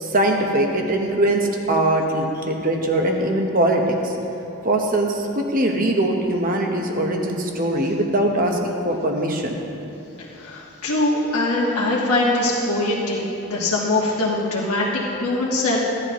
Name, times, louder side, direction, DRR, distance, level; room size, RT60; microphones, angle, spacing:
voice 1, 0.0-4.1 4.6-9.6, right 1 dB, 40° right, 2 dB, 1.0 m, -21 dB
voice 2, 10.4-13.2 13.5-14.9 15.2-15.8, left 2 dB, 80° left, -6 dB, 1.5 m, -22 dB
16.0 x 11.0 x 3.1 m, 2.9 s
head